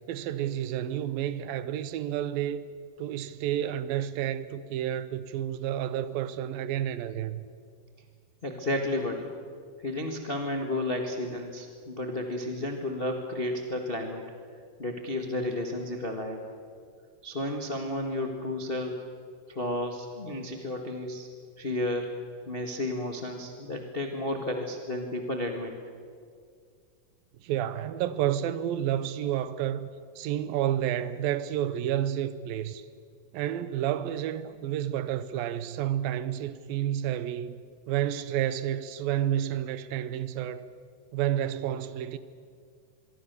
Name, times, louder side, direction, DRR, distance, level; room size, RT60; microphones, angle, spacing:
voice 1, 0.1-2.6 3.0-7.5 27.4-29.9 30.2-32.8 33.3-40.7 41.1-42.2, right 11 dB, 80° right, 2.6 m, -30 dB
voice 2, 8.4-9.3 9.8-14.2 14.8-16.4 17.2-19.0 19.5-21.3 21.6-22.1 22.5-25.7, left 1 dB, 60° left, 0.5 m, -32 dB
25.0 x 23.0 x 6.8 m
omnidirectional pair, 4.3 m